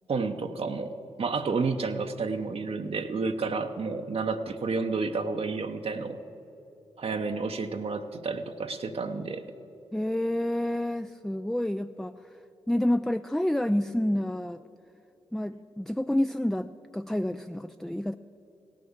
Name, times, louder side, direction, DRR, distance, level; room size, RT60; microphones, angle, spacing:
voice 1, 0.1-6.2 7.0-9.4, right 4 dB, 60° right, 6 dB, 0.8 m, -30 dB
voice 2, 9.9-12.4 12.7-14.6 15.3-18.1, left 1 dB, 5° left, 9 dB, 0.3 m, -29 dB
16.5 x 7.5 x 7.2 m, 3.0 s
supercardioid pair, 45°, 11 cm